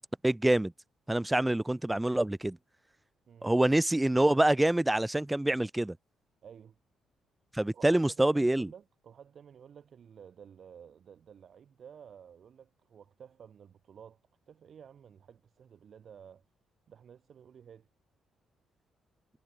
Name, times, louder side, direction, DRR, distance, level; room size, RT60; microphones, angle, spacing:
voice 1, 0.2-0.7 1.1-2.6 3.4-6.0 7.5-8.7, right 1 dB, 10° right, 0.7 m, -26 dB
voice 2, 6.4-6.8 7.7-14.2 14.5-16.4 16.9-17.9, right 8 dB, 55° right, 6.5 m, -52 dB
cardioid pair, 90°, 0 cm